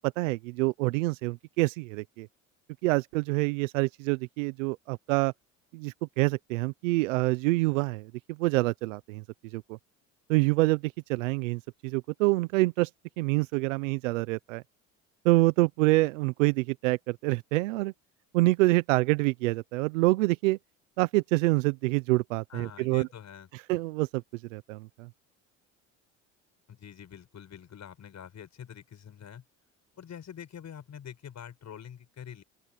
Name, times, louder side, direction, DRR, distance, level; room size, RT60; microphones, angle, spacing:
voice 1, 0.0-2.3 2.8-5.3 5.7-9.2 9.5-9.8 10.3-12.9 13.2-14.6 15.2-17.9 18.3-20.6 21.0-23.1 23.7-24.2 24.5-25.1, right 22 dB, 85° right, 1.0 m, -26 dB
voice 2, 22.5-23.5 26.7-29.4 30.0-32.4, left 9 dB, 45° left, 7.3 m, -45 dB
open air
hypercardioid pair, 70°, 38 cm